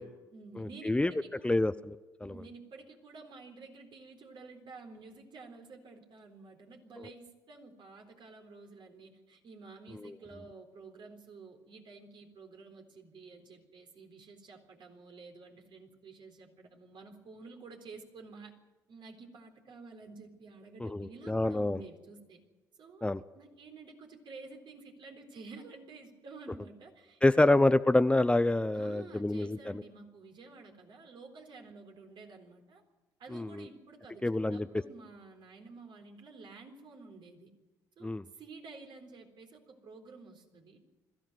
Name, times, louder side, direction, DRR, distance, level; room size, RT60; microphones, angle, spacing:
voice 1, 0.0-1.6 2.2-18.5 18.9-22.4 22.8-23.1 23.3-27.2 28.7-32.8 33.2-37.5 38.0-40.8, right 3 dB, 55° right, 3 dB, 3.9 m, -51 dB
voice 2, 0.6-1.1 1.4-2.0 2.2-2.3 20.8-21.8 23.0-23.2 27.2-29.8 33.3-33.7 34.2-34.7 38.0-38.2, left 2 dB, 10° left, 14 dB, 0.7 m, -27 dB
21.5 x 15.0 x 9.2 m, 1.2 s
hypercardioid pair, 50°, 10 cm